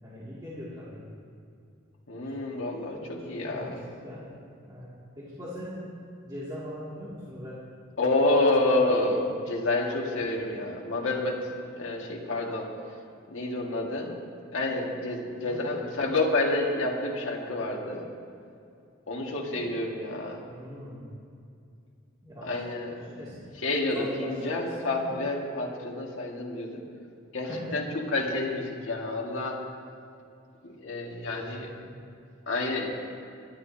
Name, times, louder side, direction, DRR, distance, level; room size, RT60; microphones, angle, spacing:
voice 1, 0.0-1.1 2.1-2.3 3.0-3.8 4.0-4.4 4.7-5.9 6.2-7.6 8.4-8.5 15.4-15.6 19.5-19.8 20.5-21.1 22.2-22.5 22.8-23.5 23.9-25.1 27.5-27.8 31.2-32.0, left 1 dB, 20° right, -10 dB, 2.4 m, -41 dB
voice 2, 2.1-3.8 8.0-12.8 13.3-14.1 14.5-18.0 19.1-20.4 22.4-23.0 23.6-26.8 27.3-29.6 30.6-31.7 32.5-33.0, left 2 dB, 80° left, -1 dB, 1.9 m, -29 dB
22.0 x 12.0 x 2.8 m, 2.4 s
head